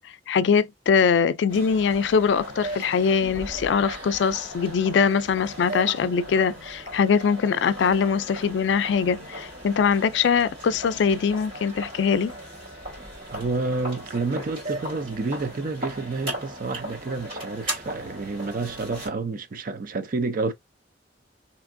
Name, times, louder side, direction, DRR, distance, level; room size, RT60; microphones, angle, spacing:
voice 1, 0.3-12.3, left 6 dB, 75° left, 0.3 m, -22 dB
sound 1, 1.5-19.1, right 1 dB, 30° right, 2.3 m, -37 dB
voice 2, 13.3-20.5, right 3 dB, 50° right, 0.5 m, -29 dB
3.4 x 2.8 x 2.5 m
head